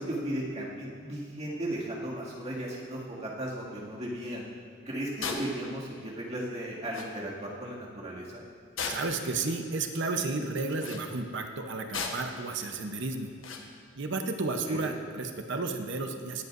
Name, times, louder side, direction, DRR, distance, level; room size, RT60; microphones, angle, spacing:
voice 1, 0.0-4.4 4.9-8.4 14.6-14.9, right 1 dB, 35° right, -5 dB, 2.1 m, -36 dB
sound 1, 5.2-5.5 6.6-6.7 6.9-7.1 8.8-9.2 10.7-11.0 11.9-12.4 13.4-13.7, left 5 dB, 85° left, 1.2 m, -35 dB
voice 2, 8.9-13.3 14.0-16.4, right 3 dB, 60° right, 5 dB, 0.8 m, -32 dB
20.0 x 8.1 x 2.6 m, 2.4 s
head